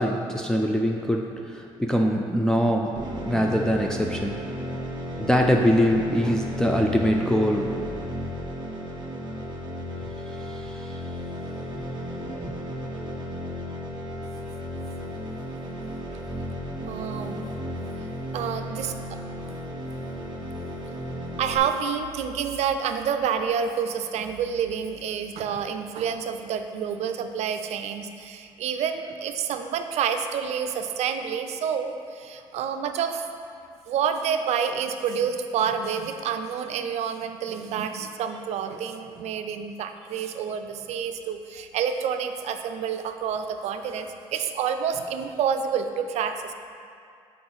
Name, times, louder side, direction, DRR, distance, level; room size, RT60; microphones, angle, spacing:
voice 1, 0.0-4.5 5.2-7.8 10.3-11.0 11.7-11.8 12.4-12.5, equal, 5° left, 0 dB, 0.4 m, -24 dB
sound 1, 2.9-21.6, equal, 40° right, 1.3 m, -34 dB
voice 2, 16.9-17.4 18.3-19.2 21.4-33.3 33.9-46.5, right 7 dB, 65° right, 7 dB, 0.4 m, -28 dB
6.0 x 4.7 x 3.9 m, 2.3 s
supercardioid pair, 75°, 12 cm